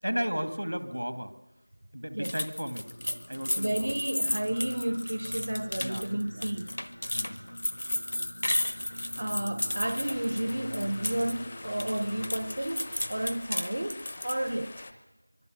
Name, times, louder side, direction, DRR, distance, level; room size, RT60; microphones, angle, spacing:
voice 1, 0.0-1.3 1.9-2.9 3.3-3.9 5.8-6.5 7.1-7.4, equal, 90° right, 2.1 m, -34 dB
sound 1, 2.2-11.3 11.6-14.5, left 1 dB, 45° left, 0.9 m, -33 dB
Singing, 2.6-13.4, equal, 70° left, 0.9 m, -46 dB
voice 2, 3.6-6.7 9.2-14.8, right 1 dB, 35° right, 0.7 m, -32 dB
sound 2, 9.8-14.9, left 2 dB, 15° left, 0.7 m, -45 dB
24.5 x 22.5 x 6.6 m
figure-of-eight pair, 175°, 0 cm